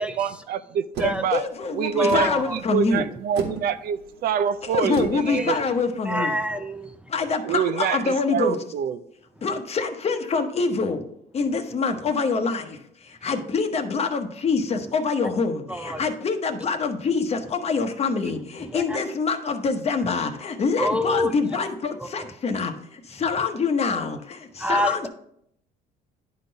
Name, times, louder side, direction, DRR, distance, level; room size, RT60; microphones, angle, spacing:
voice 1, 0.0-1.4 1.7-5.6 6.1-6.3 7.4-9.0, right 8 dB, 65° right, 0.5 m, -26 dB
sound 1, 0.9-6.5, right 4 dB, 80° right, 1.6 m, -38 dB
voice 2, 1.3-3.0 4.7-6.3 7.1-8.5 9.4-11.0 11.4-12.6 13.2-15.5 16.0-17.2 17.6-18.4 18.7-22.7 23.2-24.1 24.7-25.1, left 4 dB, 40° left, 0.9 m, -25 dB
voice 3, 2.0-2.6 5.3-5.6 6.1-6.9 15.7-16.0 18.7-19.0 20.8-21.3 22.0-22.1 24.6-25.1, left 1 dB, 5° right, 0.5 m, -26 dB
10.5 x 3.9 x 3.9 m
cardioid pair, 110°, 17 cm